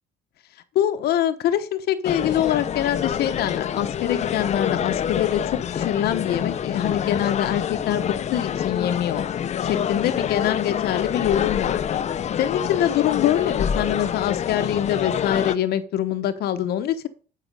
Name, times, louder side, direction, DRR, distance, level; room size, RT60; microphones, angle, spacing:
voice 1, 0.7-9.2 9.6-12.0 12.4-17.1, left 11 dB, 70° left, 9 dB, 0.8 m, -24 dB
sound 1, 2.0-15.6, left 9 dB, 40° left, 0.6 m, -26 dB
8.9 x 5.7 x 5.2 m, 0.38 s
cardioid pair, 110°, 17 cm